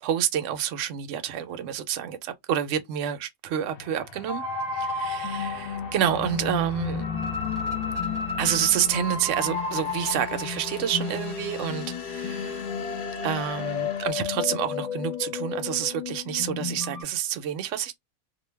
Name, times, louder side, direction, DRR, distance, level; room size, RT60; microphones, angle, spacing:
voice 1, 0.0-4.4 4.7-7.0 8.4-12.6 13.2-18.0, right 9 dB, 70° right, 0.9 m, -28 dB
sound 1, 3.7-14.1, left 5 dB, 65° left, 0.5 m, -39 dB
sound 2, 4.3-17.0, left 5 dB, 30° left, 0.9 m, -32 dB
2.5 x 2.2 x 3.2 m
omnidirectional pair, 1.5 m